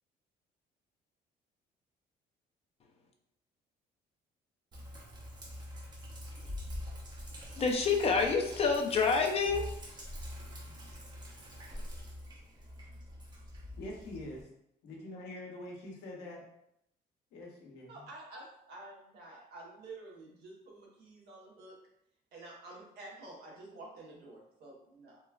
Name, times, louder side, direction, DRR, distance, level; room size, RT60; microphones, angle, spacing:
Sink (filling or washing), 4.7-14.4, left 1 dB, 25° right, 0.6 m, -45 dB
voice 1, 7.6-9.7, left 5 dB, 35° left, 2 dB, 0.5 m, -27 dB
voice 2, 13.8-14.5 14.8-16.4 17.3-18.1, left 1 dB, 80° left, -1 dB, 0.8 m, -45 dB
voice 3, 17.9-21.7 22.3-25.2, right 2 dB, 75° right, -3 dB, 1.1 m, -50 dB
3.0 x 2.3 x 2.3 m, 0.76 s
cardioid pair, 110°, 17 cm